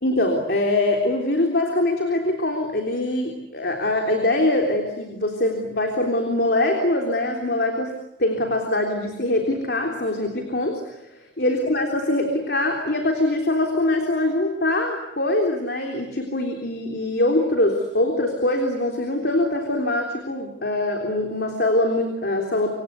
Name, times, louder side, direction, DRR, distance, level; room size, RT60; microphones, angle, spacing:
voice 1, 0.0-7.9 8.2-11.0 11.4-22.7, left 1 dB, 65° left, 3 dB, 3.6 m, -23 dB
27.0 x 25.0 x 8.3 m, 0.82 s
head